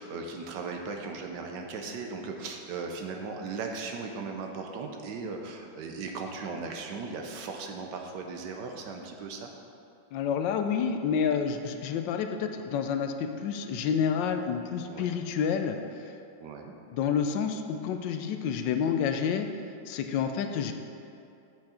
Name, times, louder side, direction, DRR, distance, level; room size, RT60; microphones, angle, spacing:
voice 1, 0.0-9.5 14.9-15.2 16.4-16.7, right 4 dB, 75° right, 3 dB, 1.3 m, -37 dB
voice 2, 10.1-16.1 16.9-19.5 19.9-20.7, left 7 dB, 80° left, 6 dB, 1.2 m, -29 dB
8.3 x 6.4 x 4.3 m, 2.6 s
omnidirectional pair, 2.0 m